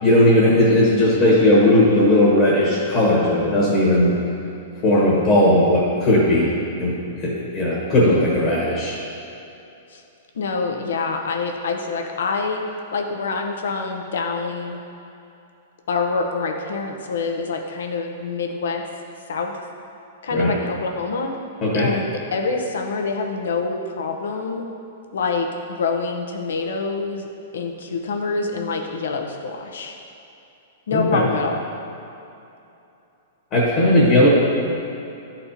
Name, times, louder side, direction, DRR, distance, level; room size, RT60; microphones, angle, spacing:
voice 1, 0.0-4.2 4.8-6.5 6.8-7.0 7.2-9.0 20.3-20.5 21.6-21.9 30.9-31.3 33.5-34.3, left 1 dB, 25° left, -6 dB, 1.3 m, -17 dB
voice 2, 10.3-12.6 12.9-14.8 15.9-18.8 19.3-19.5 20.2-21.3 21.7-24.6 25.1-30.0 30.9-31.6, left 4 dB, 80° left, 3 dB, 0.9 m, -26 dB
11.0 x 4.3 x 4.2 m, 2.8 s
supercardioid pair, 170°, 0 cm